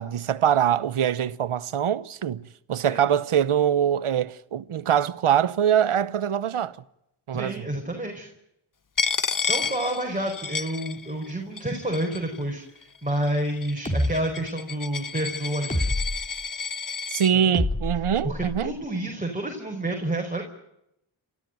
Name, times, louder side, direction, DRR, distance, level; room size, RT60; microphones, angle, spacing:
voice 1, 0.0-6.8 7.3-7.7 17.1-18.7, right 9 dB, 85° right, 0.9 m, -23 dB
voice 2, 7.3-8.3 9.5-15.9 17.3-17.5 18.2-20.4, right 1 dB, 15° right, 5.1 m, -29 dB
Coin (dropping), 9.0-11.3 11.6-12.4 13.1-17.3, left 5 dB, 40° left, 1.0 m, -31 dB
sound 1, 13.9-14.1 15.7-16.2 17.5-18.7, left 1 dB, 15° left, 3.7 m, -26 dB
28.5 x 14.0 x 9.3 m
cardioid pair, 45°, 49 cm